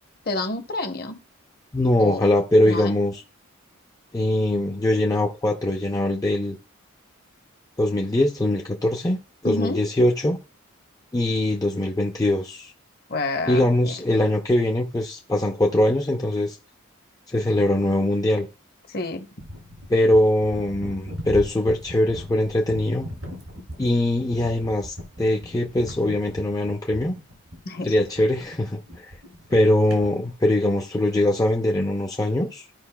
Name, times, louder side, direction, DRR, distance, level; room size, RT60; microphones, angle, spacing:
voice 1, 0.3-1.2 2.0-2.3 2.6-2.9 9.4-9.8 13.1-14.0 18.9-19.3 27.7-27.9, left 2 dB, 45° left, 0.8 m, -29 dB
voice 2, 1.7-3.2 4.1-6.6 7.8-10.4 11.1-12.7 13.5-16.6 17.3-18.5 19.9-23.1 23.8-27.1 27.8-28.8 29.5-32.6, left 1 dB, 15° left, 0.4 m, -22 dB
sound 1, 19.4-30.5, equal, 85° right, 2.8 m, -39 dB
13.5 x 5.1 x 2.2 m
head